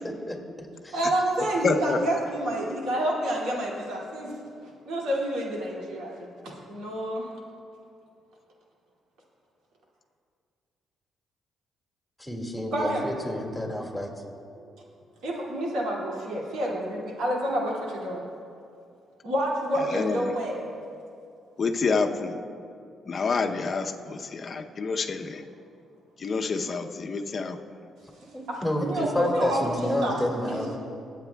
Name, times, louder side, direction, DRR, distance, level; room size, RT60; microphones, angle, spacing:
voice 1, 0.0-0.4 0.8-1.0 12.2-14.1 28.3-30.8, left 1 dB, ahead, 0 dB, 2.0 m, -29 dB
voice 2, 0.9-4.3 4.6-7.3 12.7-13.1 14.6-14.7 15.2-18.2 19.2-20.7 28.5-30.2 30.5-30.7, right 1 dB, 85° right, -3 dB, 2.4 m, -29 dB
voice 3, 1.6-2.0 19.9-20.3 21.6-22.4 23.1-25.4 26.2-27.6, left 4 dB, 45° left, 5 dB, 0.7 m, -28 dB
23.5 x 8.4 x 2.3 m, 2.4 s
cardioid pair, 90°, 0 cm